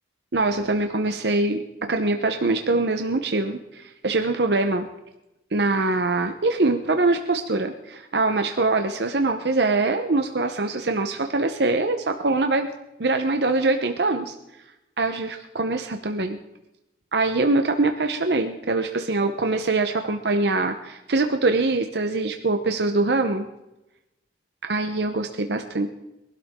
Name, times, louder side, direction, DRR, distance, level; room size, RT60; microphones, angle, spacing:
voice 1, 0.3-4.9 5.5-12.7 13.0-14.3 15.0-16.4 17.1-23.5 24.6-25.9, right 3 dB, 70° right, 6 dB, 0.9 m, -23 dB
22.5 x 12.5 x 3.7 m, 0.93 s
head